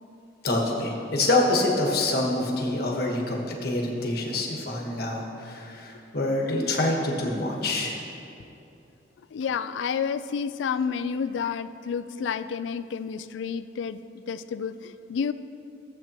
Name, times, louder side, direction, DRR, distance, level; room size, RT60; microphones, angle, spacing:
voice 1, 0.4-8.0, left 2 dB, 55° left, 0 dB, 1.3 m, -26 dB
voice 2, 9.3-14.0 14.3-15.3, left 6 dB, 85° left, 13 dB, 0.3 m, -30 dB
14.5 x 7.7 x 3.0 m, 2.7 s
head